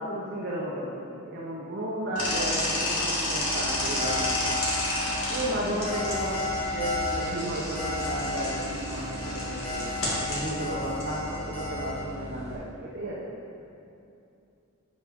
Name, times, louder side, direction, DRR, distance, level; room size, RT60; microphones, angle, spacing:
voice 1, 0.0-4.7 5.3-9.9 10.3-13.4, right 1 dB, 50° right, -5 dB, 0.9 m, -33 dB
sound 1, 2.2-12.6, left 1 dB, 80° left, 1.9 m, -32 dB
sound 2, 3.4-12.0, left 2 dB, 10° left, 1.8 m, -33 dB
10.5 x 4.9 x 3.6 m, 2.7 s
head